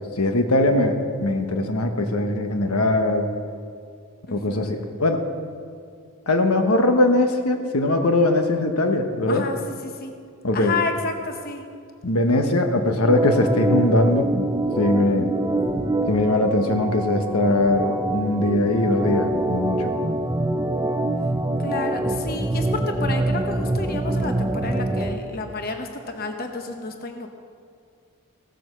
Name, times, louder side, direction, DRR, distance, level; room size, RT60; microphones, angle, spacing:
voice 1, 0.1-3.3 4.3-5.3 6.3-9.4 10.4-10.8 12.0-14.3 14.8-15.3 16.1-19.9, left 1 dB, 80° left, 5 dB, 1.2 m, -21 dB
voice 2, 4.3-4.9 9.3-9.6 9.8-10.1 10.5-11.6 21.6-27.3, left 3 dB, 40° left, 4 dB, 0.9 m, -30 dB
Organ, 13.0-25.2, right 1 dB, 15° right, 0.5 m, -25 dB
16.5 x 7.8 x 6.7 m, 2.2 s
head